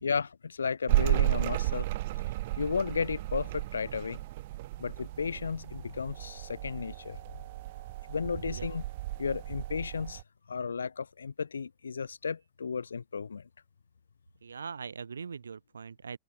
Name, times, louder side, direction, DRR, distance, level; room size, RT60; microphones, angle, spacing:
voice 1, 0.0-1.9 2.6-4.2 4.8-7.2 8.1-8.8 9.2-10.2 10.5-13.5, left 5 dB, 75° left, 0.5 m, -34 dB
sound 1, 0.9-10.2, right 17 dB, 55° right, 0.4 m, -33 dB
voice 2, 14.4-16.2, right 6 dB, 75° right, 6.7 m, -41 dB
figure-of-eight pair, 90°, 0 cm